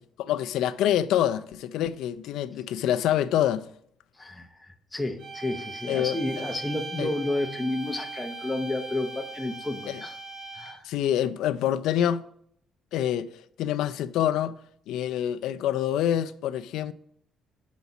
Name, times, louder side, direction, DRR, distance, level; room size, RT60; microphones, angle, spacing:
voice 1, 0.2-3.7 5.9-6.2 7.0-7.1 9.9-10.0 10.8-12.2 12.9-14.5 14.9-16.9, left 11 dB, 80° left, 0.4 m, -26 dB
voice 2, 4.2-10.1 10.5-10.9, left 2 dB, 10° left, 0.7 m, -31 dB
sound 1, 5.2-10.9, right 3 dB, 70° right, 1.2 m, -39 dB
8.1 x 4.1 x 5.8 m
cardioid pair, 145°, 0 cm